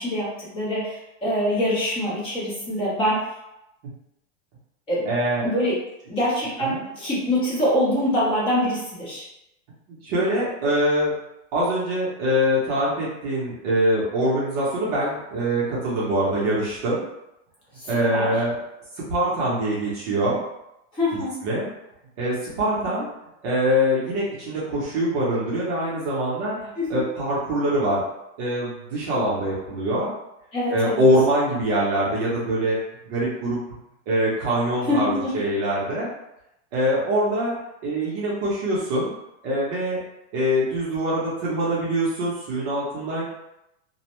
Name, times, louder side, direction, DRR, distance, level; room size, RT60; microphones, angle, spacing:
voice 1, 0.0-3.2 4.9-5.1 5.4-5.8 6.1-9.2 17.8-18.4 20.9-21.4 26.8-27.0 30.5-31.0 34.8-35.3, left 1 dB, 15° left, -8 dB, 0.6 m, -24 dB
voice 2, 5.1-5.5 6.7-6.8 10.0-11.1 11.5-17.0 17.9-18.6 19.0-20.4 21.1-21.7 22.2-23.1 23.4-28.0 28.4-30.1 30.7-32.8 33.0-33.6 34.1-36.1 36.7-37.5 37.8-39.1 39.4-40.0 40.3-43.2, equal, 30° right, -7 dB, 0.6 m, -23 dB
2.5 x 2.0 x 2.9 m, 0.86 s
supercardioid pair, 175°, 39 cm